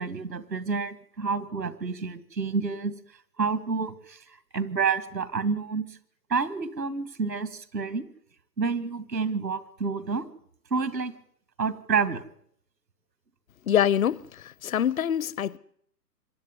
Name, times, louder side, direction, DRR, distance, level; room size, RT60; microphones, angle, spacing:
voice 1, 0.0-2.9 3.4-4.2 4.5-5.9 6.3-8.1 8.6-10.3 10.7-11.1 11.6-12.2, right 5 dB, 85° right, 2.2 m, -29 dB
voice 2, 13.7-15.6, left 10 dB, 55° left, 0.8 m, -25 dB
25.5 x 11.5 x 9.6 m
figure-of-eight pair, 125°, 49 cm